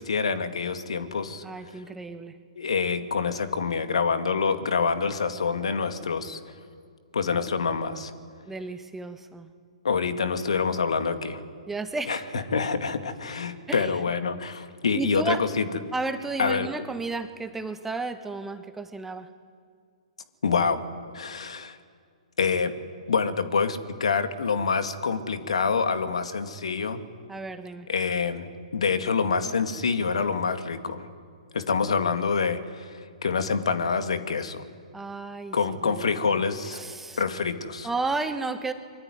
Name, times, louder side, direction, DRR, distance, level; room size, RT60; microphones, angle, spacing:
voice 1, 0.0-1.4 2.6-6.4 7.1-8.1 9.8-11.4 12.1-15.7 16.4-16.7 20.4-20.8 21.1-21.8 22.4-22.7 23.1-27.0 27.9-31.1 31.5-34.6 35.5-36.8 37.2-37.9, left 5 dB, 65° left, 8 dB, 2.3 m, -26 dB
voice 2, 1.4-2.3 8.5-9.5 11.7-12.2 13.7-13.9 14.9-15.4 15.9-19.3 27.3-27.9 34.9-35.6 35.8-37.2 37.8-38.7, right 3 dB, 5° right, 8 dB, 1.5 m, -33 dB
25.5 x 24.0 x 9.5 m, 2.1 s
figure-of-eight pair, 120°, 4 cm